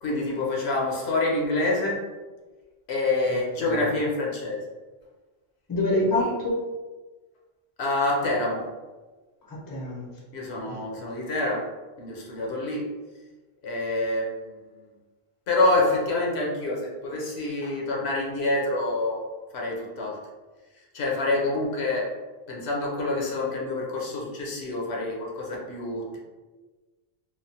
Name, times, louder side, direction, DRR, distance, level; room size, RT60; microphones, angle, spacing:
voice 1, 0.0-2.0 2.9-4.6 6.0-6.3 7.8-8.6 10.3-11.6 12.0-12.9 13.6-14.6 15.5-19.2 19.5-20.2 20.9-22.1 22.5-26.2, left 2 dB, 75° left, -2 dB, 0.9 m, -27 dB
voice 2, 5.7-6.6 9.5-10.1 10.7-11.1, left 1 dB, 25° left, -4 dB, 0.5 m, -27 dB
3.1 x 2.0 x 2.7 m, 1.3 s
omnidirectional pair, 1.1 m